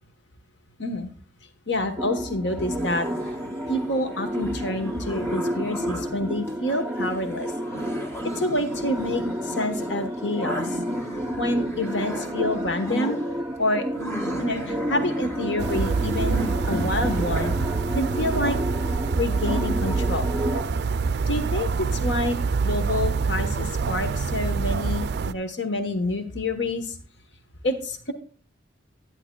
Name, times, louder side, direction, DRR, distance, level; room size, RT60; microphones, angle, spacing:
voice 1, 0.8-1.1 1.7-3.1 3.7-7.5 8.4-10.8 11.4-13.2 13.6-13.9 14.4-16.4 16.7-17.5 17.9-18.6 19.1-20.3 21.3-22.4 22.6-27.0 27.6-28.1, left 1 dB, 65° left, 8 dB, 1.1 m, -27 dB
sound 1, 2.0-20.6, equal, 10° right, 0.6 m, -31 dB
sound 2, 2.5-17.7, right 1 dB, 15° left, 1.7 m, -36 dB
sound 3, 15.6-25.3, right 4 dB, 60° right, 0.4 m, -26 dB
11.0 x 9.6 x 2.2 m, 0.41 s
head